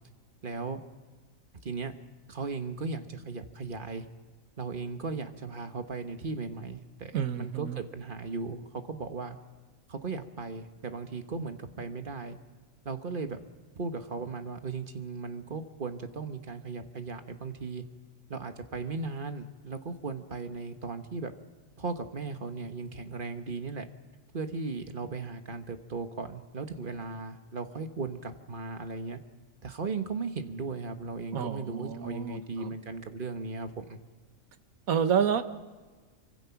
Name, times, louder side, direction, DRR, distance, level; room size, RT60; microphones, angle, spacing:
voice 1, 0.4-0.8 1.6-1.9 2.3-4.1 4.6-9.4 9.9-12.4 12.8-13.4 13.7-17.8 18.3-21.3 21.8-23.9 24.3-29.2 29.6-34.0, right 4 dB, 40° right, 8 dB, 1.3 m, -37 dB
voice 2, 7.1-7.8 31.3-32.7 34.9-35.4, right 7 dB, 80° right, 10 dB, 1.5 m, -29 dB
25.0 x 24.5 x 5.9 m, 1.4 s
omnidirectional pair, 1.5 m